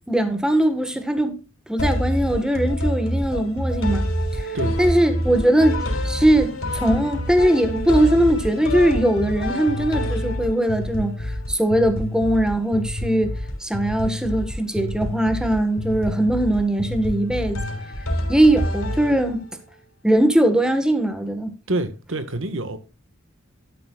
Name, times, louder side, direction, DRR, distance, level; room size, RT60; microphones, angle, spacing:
voice 1, 0.1-1.4 1.7-4.1 4.4-4.5 4.8-17.6 18.3-19.4 20.0-21.5, right 1 dB, 5° right, 1.6 m, -20 dB
sound 1, 1.8-19.6, equal, 90° left, 3.6 m, -27 dB
voice 2, 21.7-22.8, right 2 dB, 70° right, 1.6 m, -26 dB
12.0 x 10.0 x 2.4 m
head